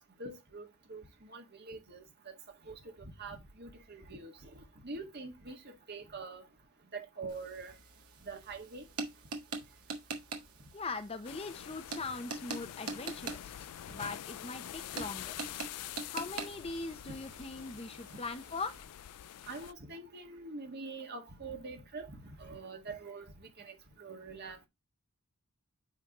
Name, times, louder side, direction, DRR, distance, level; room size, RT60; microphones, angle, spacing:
voice 1, 0.2-1.0 1.3-2.3 2.7-2.8 3.2-6.4 6.9-7.7 8.3-8.8 17.1-17.2 19.5-23.3 23.6-24.6, right 3 dB, 45° right, 1.7 m, -45 dB
sound 1, 7.3-18.8, right 4 dB, 85° right, 1.8 m, -45 dB
voice 2, 10.7-13.4 13.9-15.3 16.1-18.8, left 3 dB, 25° left, 0.7 m, -40 dB
sound 2, 11.2-19.7, left 12 dB, 90° left, 0.4 m, -46 dB
9.0 x 4.0 x 2.9 m
head